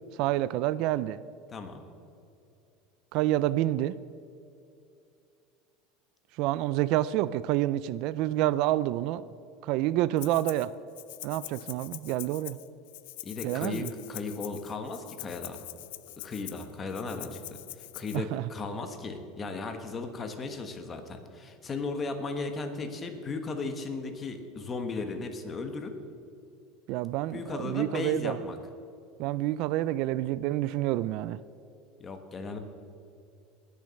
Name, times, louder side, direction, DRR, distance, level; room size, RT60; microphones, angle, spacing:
voice 1, 0.2-1.2 3.1-4.0 6.4-9.2 9.6-10.7 11.2-12.6 13.4-13.9 18.1-18.5 26.9-28.4 29.2-31.4, right 14 dB, 55° right, 17 dB, 0.3 m, -28 dB
voice 2, 1.5-1.8 13.2-15.6 16.2-25.9 27.3-28.6 32.0-32.6, left 3 dB, 20° left, 6 dB, 1.3 m, -36 dB
Rattle (instrument), 10.2-10.7 11.0-18.2, left 18 dB, 80° left, 0.5 m, -44 dB
20.0 x 6.9 x 6.4 m, 2.6 s
cardioid pair, 155°, 0 cm